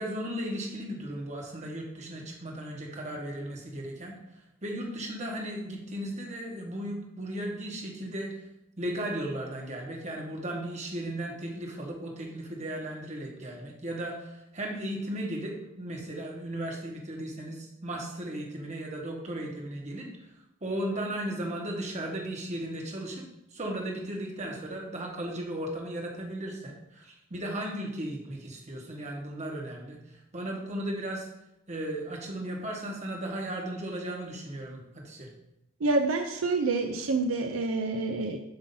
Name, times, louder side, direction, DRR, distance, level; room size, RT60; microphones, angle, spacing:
voice 1, 0.0-4.1 4.6-8.3 8.8-20.1 20.6-23.2 23.5-30.0 30.3-31.3 31.7-35.3, right 1 dB, 35° right, 0 dB, 1.2 m, -36 dB
voice 2, 35.8-38.4, right 3 dB, 75° right, 4 dB, 0.5 m, -27 dB
7.9 x 2.8 x 5.4 m, 0.86 s
head